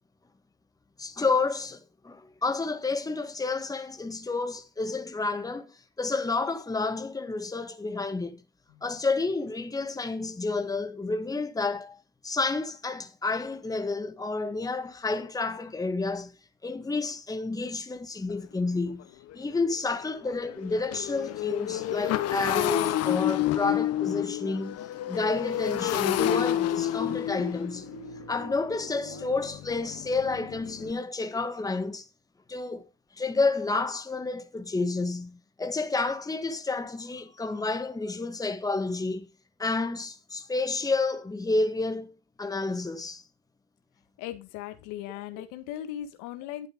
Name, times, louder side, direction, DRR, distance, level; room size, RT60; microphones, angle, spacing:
voice 1, 1.0-8.4 8.8-12.0 12.2-16.3 16.6-19.1 19.3-24.8 25.1-27.9 28.3-32.1 32.5-32.9 33.1-39.3 39.6-42.1 42.4-43.2, left 3 dB, 10° left, 1.7 m, -30 dB
voice 2, 8.7-9.0 44.2-46.7, left 12 dB, 65° left, 1.9 m, -38 dB
Motorcycle, 18.3-18.4 18.9-19.0 19.3-30.9, left 12 dB, 50° left, 1.3 m, -30 dB
sound 1, 24.6-29.5, right 5 dB, 70° right, 6.5 m, -50 dB
11.5 x 8.7 x 4.7 m
hypercardioid pair, 95°, 33 cm